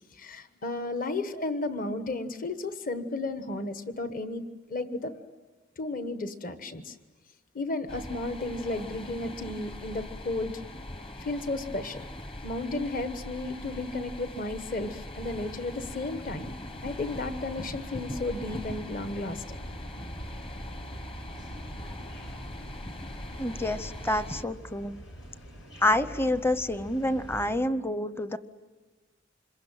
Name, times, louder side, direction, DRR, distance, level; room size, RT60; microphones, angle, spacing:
voice 1, 0.1-4.4 4.7-5.2 5.8-7.0 7.5-10.5 11.2-12.1 12.4-16.5 16.8-19.6, left 2 dB, 45° left, 9 dB, 1.3 m, -33 dB
sound 1, 7.9-24.4, left 1 dB, 30° left, 1.2 m, -41 dB
sound 2, 15.2-24.1, equal, 70° left, 3.3 m, -48 dB
sound 3, 17.3-27.5, equal, 85° left, 6.3 m, -46 dB
voice 2, 23.4-25.0 25.8-28.4, left 1 dB, 10° left, 13 dB, 0.8 m, -28 dB
27.0 x 22.5 x 9.1 m, 1.3 s
head